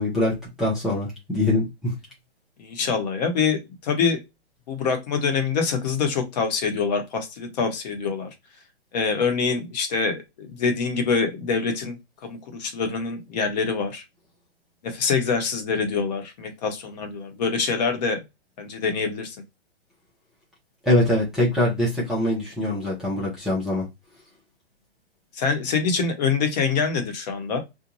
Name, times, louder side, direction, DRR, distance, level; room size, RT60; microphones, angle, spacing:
voice 1, 0.0-1.9 20.9-23.8, left 1 dB, ahead, -7 dB, 0.5 m, -23 dB
voice 2, 2.6-4.2 4.7-8.3 8.9-12.0 12.2-14.0 14.8-18.2 18.6-19.4 25.3-27.6, left 5 dB, 40° left, 6 dB, 0.9 m, -25 dB
2.6 x 2.1 x 2.9 m, 0.22 s
hypercardioid pair, 140°, 34 cm